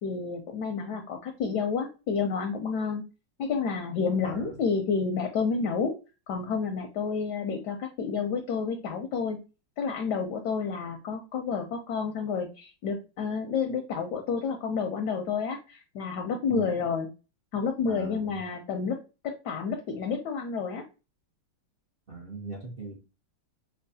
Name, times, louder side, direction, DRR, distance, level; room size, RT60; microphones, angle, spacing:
voice 1, 0.0-3.0 3.4-5.9 6.3-9.4 9.8-17.1 17.5-19.0 19.2-20.8, left 5 dB, 75° left, 5 dB, 1.0 m, -30 dB
voice 2, 4.2-4.6 16.5-16.8 17.9-18.4 22.1-23.0, right 3 dB, 85° right, -3 dB, 0.5 m, -39 dB
5.6 x 2.2 x 2.6 m, 0.31 s
omnidirectional pair, 2.3 m